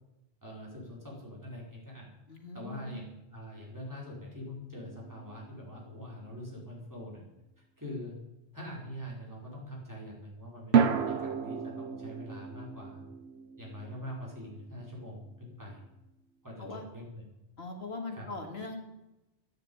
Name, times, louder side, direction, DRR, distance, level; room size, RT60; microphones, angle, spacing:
voice 1, 0.4-2.1 2.5-7.2 7.8-8.2 8.5-13.0 13.6-15.8 16.4-17.2 18.1-18.3, equal, 15° right, -3 dB, 5.1 m, -44 dB
voice 2, 2.3-3.0 16.6-16.9 17.6-18.8, left 3 dB, 70° left, 3 dB, 2.5 m, -40 dB
sound 1, 4.8-5.9 10.7-15.1, right 7 dB, 80° right, 1.3 m, -32 dB
14.0 x 9.5 x 8.8 m, 0.96 s
omnidirectional pair, 1.1 m